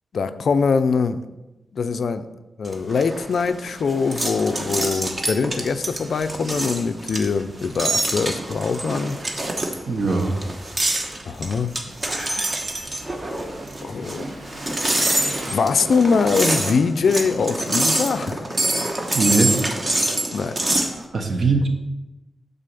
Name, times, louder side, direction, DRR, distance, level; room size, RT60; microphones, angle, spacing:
voice 1, 0.1-1.2 1.7-2.3 2.6-9.2 11.3-11.7 12.6-12.8 13.8-14.4 15.4-18.5 20.3-20.6, left 5 dB, 60° left, 11 dB, 0.4 m, -23 dB
sound 1, 2.6-20.9, right 2 dB, 30° right, 1.2 m, -25 dB
Engine, 5.2-18.5, right 1 dB, 75° right, 2.5 m, -44 dB
voice 2, 9.9-10.4 19.1-19.6 21.1-21.7, right 3 dB, 50° right, 4 dB, 1.1 m, -20 dB
9.1 x 4.1 x 6.8 m, 1.0 s
wide cardioid pair, 140°, 0 cm